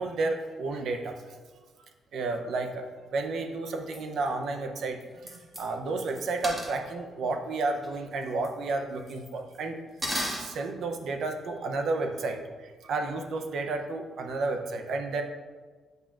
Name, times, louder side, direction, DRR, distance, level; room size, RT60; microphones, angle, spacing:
voice 1, 0.0-1.3 2.1-2.8 3.1-9.8 10.3-15.2, right 3 dB, 70° right, 5 dB, 0.7 m, -32 dB
sound 1, 3.9-4.0 4.3-4.4 5.0-5.1 5.3-5.6 6.0-6.7 7.8-8.0 8.2-8.5 9.1-9.6 10.0-10.4, equal, 20° right, 1.6 m, -33 dB
7.9 x 5.7 x 2.5 m, 1.4 s
cardioid pair, 100°, 0 cm